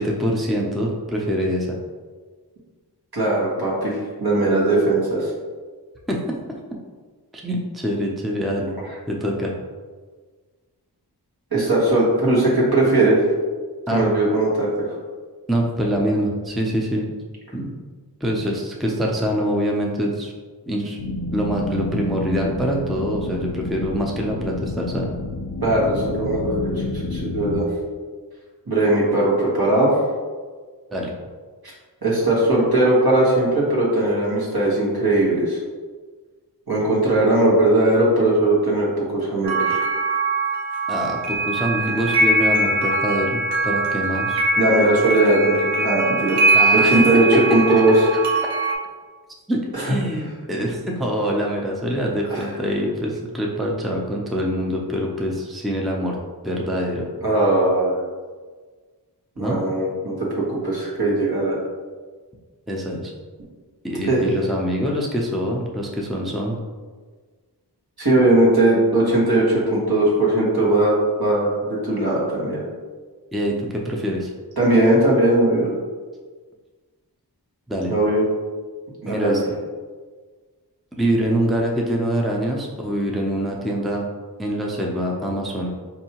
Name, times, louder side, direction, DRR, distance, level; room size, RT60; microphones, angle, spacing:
voice 1, 0.0-1.7 6.1-6.2 7.3-8.7 9.1-9.5 13.9-14.0 15.5-17.1 17.5-17.7 18.2-20.3 20.7-21.0 21.3-25.1 30.9-31.1 40.9-44.4 46.5-47.1 48.1-48.2 49.5-56.2 56.4-57.1 59.4-59.6 62.7-63.1 63.8-66.6 73.3-74.3 77.7-77.9 79.1-79.4 80.9-84.1 84.4-85.7, equal, ahead, -1 dB, 0.5 m, -24 dB
voice 2, 3.1-5.3 11.5-13.2 13.9-14.7 25.6-27.7 28.7-29.9 31.6-31.7 32.0-35.6 36.7-39.8 44.6-48.0 49.7-49.9 52.3-52.4 57.2-57.9 59.4-61.6 64.1-64.3 68.0-72.6 74.6-75.7 77.9-78.2 79.0-79.4, right 1 dB, 65° right, -5 dB, 1.3 m, -19 dB
sound 1, 21.0-27.6, left 2 dB, 85° left, 0.5 m, -29 dB
sound 2, 39.4-48.7, right 2 dB, 85° right, 0.7 m, -21 dB
4.6 x 2.7 x 2.9 m, 1.5 s
wide cardioid pair, 40°, 39 cm